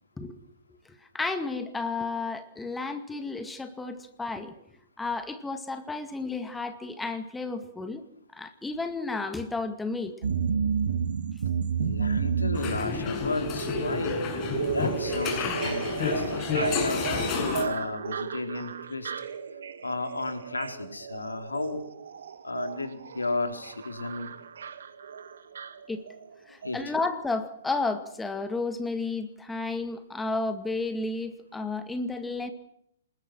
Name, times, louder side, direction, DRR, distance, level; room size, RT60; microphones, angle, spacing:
voice 1, 1.1-4.5 5.0-8.0 8.3-10.1 25.9-26.0 26.5-32.5, left 3 dB, 5° left, 8 dB, 2.1 m, -32 dB
sound 1, 10.2-26.3 26.6-26.7, right 6 dB, 65° right, 2.2 m, -32 dB
voice 2, 11.8-14.2 14.7-19.1 19.8-21.8 22.4-24.3 26.5-26.9, left 3 dB, 85° left, 6 dB, 4.2 m, -33 dB
sound 2, 12.5-17.7, left 5 dB, 30° left, 7.2 m, -30 dB
27.0 x 21.0 x 6.2 m, 0.74 s
figure-of-eight pair, 120°, 0 cm